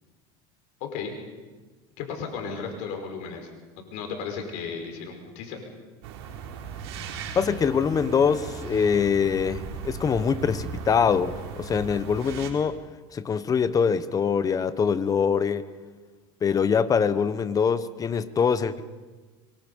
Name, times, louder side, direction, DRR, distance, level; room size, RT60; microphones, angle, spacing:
voice 1, 0.8-1.2 2.0-3.5 3.8-5.6, left 5 dB, 70° left, 4 dB, 5.1 m, -34 dB
sound 1, 6.0-12.5, right 6 dB, 85° right, 4.0 m, -37 dB
voice 2, 7.3-12.8 13.1-15.7 16.4-18.8, left 6 dB, 25° left, 14 dB, 1.1 m, -24 dB
24.0 x 23.5 x 5.5 m, 1.3 s
supercardioid pair, 125°, 13 cm